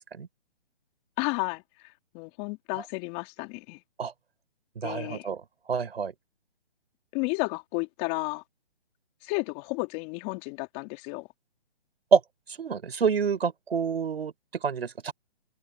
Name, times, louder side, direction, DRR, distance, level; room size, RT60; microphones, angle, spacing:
voice 1, 1.2-1.6 2.1-3.8 4.8-5.3 7.1-8.4 9.2-11.3, left 30 dB, 25° left, 3.8 m, -32 dB
voice 2, 4.8-5.4 5.7-6.1 12.1-12.2 12.6-14.3 14.6-15.1, right 6 dB, 70° right, 5.2 m, -26 dB
open air
hypercardioid pair, 150°, 32 cm